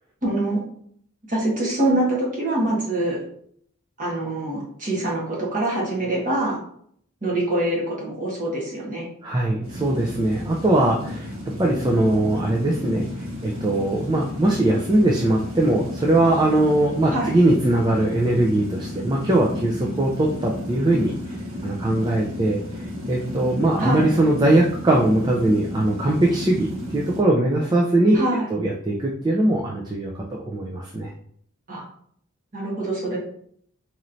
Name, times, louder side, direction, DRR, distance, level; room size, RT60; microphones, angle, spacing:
voice 1, 0.2-0.6 1.3-3.2 4.0-6.6 7.2-9.1 17.1-17.3 23.8-24.1 28.1-28.5 31.7-31.9 32.5-33.2, right 1 dB, 35° right, -5 dB, 1.4 m, -24 dB
voice 2, 9.2-11.3 11.6-28.2 28.5-31.1, right 1 dB, 20° right, -2 dB, 0.4 m, -21 dB
sound 1, 9.6-27.2, left 1 dB, 75° right, 1.1 m, -33 dB
4.2 x 3.1 x 2.6 m, 0.63 s
head